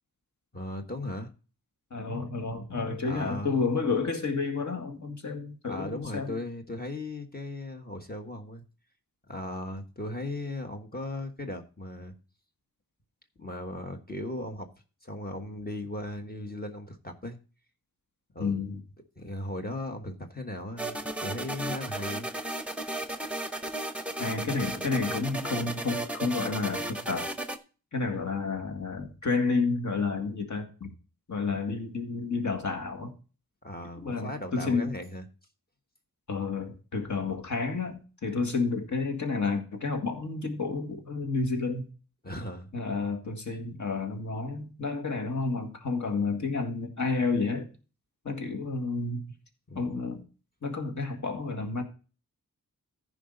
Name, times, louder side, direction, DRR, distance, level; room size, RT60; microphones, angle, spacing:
voice 1, 0.5-1.3 3.0-3.6 5.7-8.6 9.3-12.1 13.4-14.7 15.0-17.4 18.3-18.6 19.2-22.3 33.6-35.2 42.2-42.7 49.7-50.0, left 1 dB, 25° left, 1.4 m, -37 dB
voice 2, 1.9-6.4 18.4-18.8 24.2-27.3 27.9-30.9 31.3-33.1 34.0-34.9 36.3-41.9 42.7-47.7 48.3-49.2 49.8-50.2 50.6-51.8, left 4 dB, 55° left, 2.0 m, -30 dB
sound 1, 20.8-27.6, right 1 dB, 5° right, 0.9 m, -35 dB
15.0 x 5.0 x 3.9 m
wide cardioid pair, 85°, 35 cm